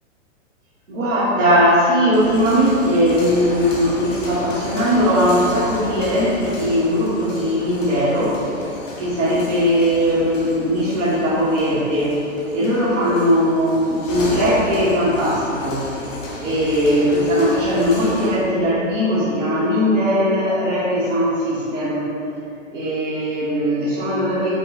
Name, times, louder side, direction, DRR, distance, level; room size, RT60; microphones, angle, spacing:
voice 1, 0.9-8.4 9.0-12.2 12.5-15.9 16.4-22.1 22.7-24.5, equal, 85° right, -8 dB, 1.3 m, -19 dB
sound 1, 2.0-18.4, left 1 dB, 90° left, 1.0 m, -33 dB
4.9 x 2.3 x 4.0 m, 2.7 s
hypercardioid pair, 115°, 37 cm